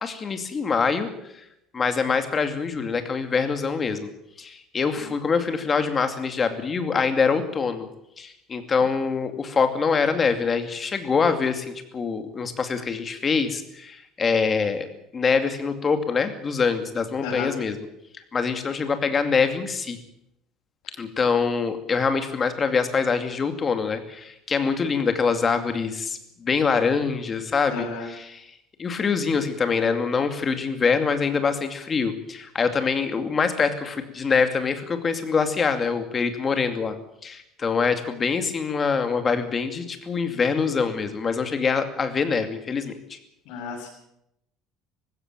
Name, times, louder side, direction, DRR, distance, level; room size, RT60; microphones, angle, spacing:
voice 1, 0.0-1.1 1.3-1.4 1.7-4.1 4.4-7.9 8.2-14.9 15.1-17.9 18.3-20.0 21.0-28.5 28.8-37.0 37.2-43.2, left 5 dB, 25° left, 8 dB, 2.5 m, -24 dB
voice 2, 17.2-17.5 27.7-28.1 43.5-43.9, left 5 dB, 70° left, -5 dB, 7.1 m, -32 dB
20.0 x 16.0 x 9.0 m, 0.80 s
cardioid pair, 155°, 0 cm